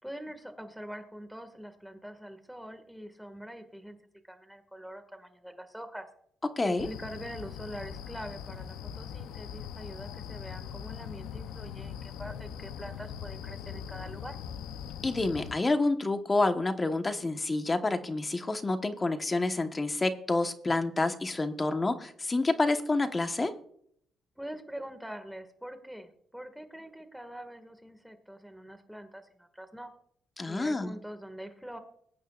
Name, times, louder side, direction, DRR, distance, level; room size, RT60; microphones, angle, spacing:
voice 1, 0.0-4.0 4.3-6.1 6.6-14.4 24.4-29.9 30.5-31.8, equal, ahead, 8 dB, 1.8 m, -44 dB
voice 2, 6.6-6.9 15.0-23.5 30.4-30.9, left 2 dB, 25° left, 8 dB, 1.2 m, -28 dB
sound 1, 6.8-15.5, left 8 dB, 90° left, 0.6 m, -41 dB
21.0 x 9.3 x 2.4 m, 0.66 s
cardioid pair, 90°, 0 cm